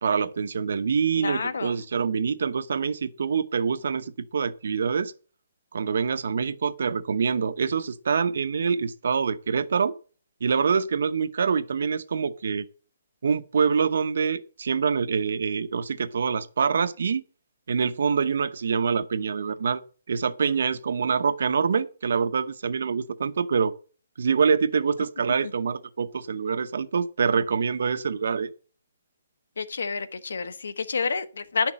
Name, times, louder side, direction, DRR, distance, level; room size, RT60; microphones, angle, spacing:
voice 1, 0.0-5.1 5.7-9.9 10.4-12.6 13.2-17.2 17.7-19.8 20.1-23.7 24.2-28.5, right 6 dB, 55° right, 0.8 m, -25 dB
voice 2, 1.2-1.8 29.6-31.7, left 5 dB, 80° left, 1.2 m, -29 dB
11.0 x 6.0 x 7.4 m
hypercardioid pair, 175°, 0 cm